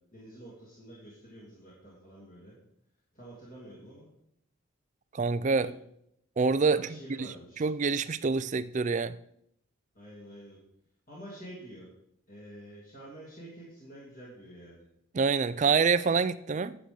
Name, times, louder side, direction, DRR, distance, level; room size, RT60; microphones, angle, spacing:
voice 1, 0.1-2.5 3.1-4.1 5.5-5.7 6.7-7.7 9.9-10.6 11.1-11.9 12.3-14.8, right 1 dB, 40° left, 2.9 m, -48 dB
voice 2, 5.1-5.7 6.4-6.8 7.2-7.3 7.6-9.2 15.1-16.8, right 5 dB, 35° right, 0.4 m, -26 dB
10.5 x 7.9 x 5.3 m
head